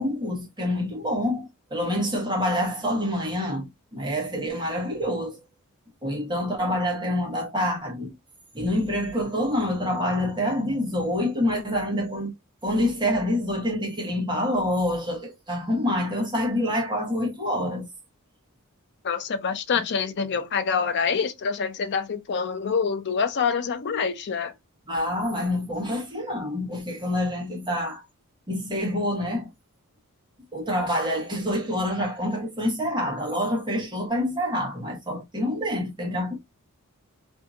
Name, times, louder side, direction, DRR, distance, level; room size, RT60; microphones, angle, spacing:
voice 1, 0.0-5.4 6.0-8.1 8.5-12.3 12.6-17.9 24.9-28.0 28.5-29.5 30.5-36.4, left 1 dB, 20° right, 1.1 m, -27 dB
voice 2, 19.0-24.5, left 6 dB, 50° left, 0.5 m, -26 dB
2.7 x 2.6 x 2.3 m
head